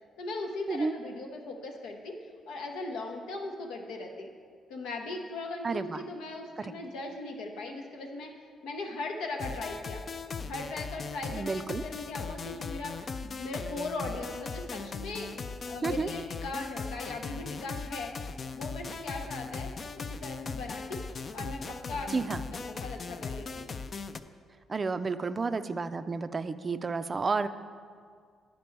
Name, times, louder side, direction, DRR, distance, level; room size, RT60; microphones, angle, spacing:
voice 1, 0.2-2.2 2.5-4.3 4.7-8.3 8.6-10.0 10.4-15.3 15.6-18.1 18.5-21.0 21.3-22.2 22.5-23.6, left 2 dB, 90° left, 2 dB, 0.9 m, -39 dB
voice 2, 5.6-6.0 6.6-6.7 11.3-11.8 15.8-16.1 22.1-22.4 24.7-27.5, right 4 dB, 35° right, 11 dB, 0.3 m, -31 dB
sound 1, 9.4-24.2, left 4 dB, 40° left, 0.3 m, -39 dB
10.5 x 5.2 x 4.5 m, 2.1 s
cardioid pair, 90°, 0 cm